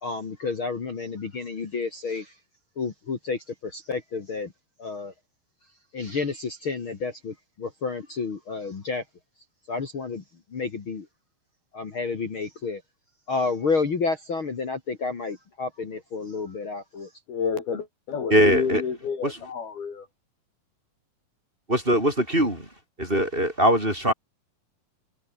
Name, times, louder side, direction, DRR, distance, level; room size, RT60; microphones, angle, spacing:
voice 1, 0.0-2.3 2.8-4.5 4.8-5.1 5.9-9.0 9.7-10.2 10.5-11.1 11.7-12.8 13.3-17.1, left 4 dB, 40° left, 2.9 m, -30 dB
voice 2, 17.3-20.1, left 6 dB, 85° left, 6.3 m, -29 dB
voice 3, 18.3-18.8 19.2-19.4 21.7-22.7 23.0-24.1, right 1 dB, 15° right, 5.8 m, -21 dB
omnidirectional pair, 4.3 m